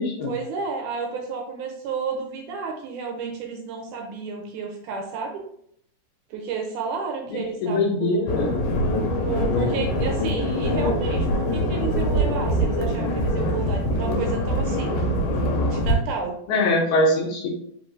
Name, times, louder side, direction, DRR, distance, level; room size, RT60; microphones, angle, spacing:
voice 1, 0.3-5.4 6.3-8.3 9.2-15.0 15.7-16.4, right 5 dB, 80° right, 2 dB, 2.0 m, -31 dB
voice 2, 7.3-8.6 16.5-17.5, left 2 dB, 70° left, -2 dB, 2.2 m, -22 dB
sound 1, 8.3-15.9, equal, 85° left, 2.3 m, -23 dB
5.1 x 3.4 x 2.6 m, 0.69 s
omnidirectional pair, 3.8 m